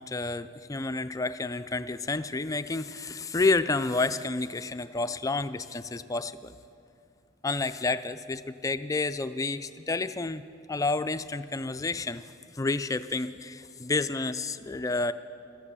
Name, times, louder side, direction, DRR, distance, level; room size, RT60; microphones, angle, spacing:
voice 1, 0.0-6.6 7.4-15.1, left 3 dB, 15° left, 12 dB, 0.4 m, -30 dB
16.0 x 13.0 x 6.9 m, 2.5 s
head